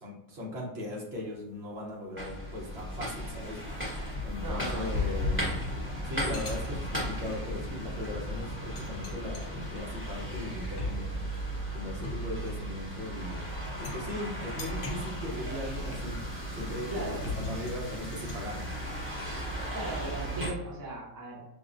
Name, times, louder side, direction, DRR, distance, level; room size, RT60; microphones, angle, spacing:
voice 1, 0.0-5.6 6.0-11.2 11.7-13.4 13.8-16.2 16.5-18.6, left 1 dB, 50° right, -2 dB, 1.0 m, -39 dB
sound 1, 1.2-1.5 1.9-2.0 2.8-19.9, left 3 dB, 70° left, 1.1 m, -40 dB
sound 2, 2.2-20.5, right 1 dB, 10° right, 1.0 m, -36 dB
voice 2, 4.4-4.9 16.9-17.3 17.5-17.7 19.7-21.4, right 1 dB, 30° right, -3 dB, 0.4 m, -38 dB
5.5 x 2.1 x 2.5 m, 0.92 s
omnidirectional pair, 1.5 m